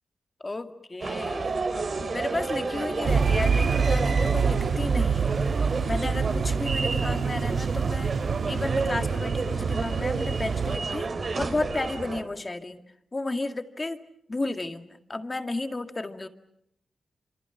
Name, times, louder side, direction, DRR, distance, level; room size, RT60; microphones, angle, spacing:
voice 1, 0.4-1.6 2.1-5.5 5.9-8.1 8.5-11.1 11.4-12.8 13.1-14.0 14.3-16.3, left 2 dB, 25° left, 7 dB, 1.9 m, -32 dB
sound 1, 1.0-12.2, right 4 dB, 45° right, 3.0 m, -31 dB
sound 2, 3.0-10.8, right 5 dB, 70° right, 1.5 m, -26 dB
29.0 x 27.5 x 6.9 m, 0.76 s
wide cardioid pair, 145°, 0 cm